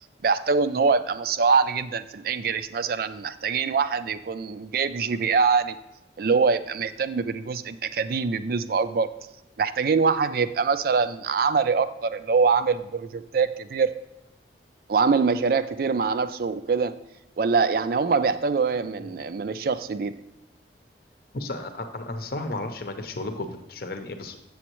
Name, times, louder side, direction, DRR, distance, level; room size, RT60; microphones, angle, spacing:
voice 1, 0.2-5.8 6.2-9.1 9.6-13.9 14.9-16.9 17.4-20.1, right 5 dB, 55° right, 13 dB, 0.4 m, -24 dB
voice 2, 21.3-24.4, left 2 dB, 55° left, 7 dB, 0.7 m, -33 dB
7.7 x 7.2 x 3.0 m, 0.88 s
head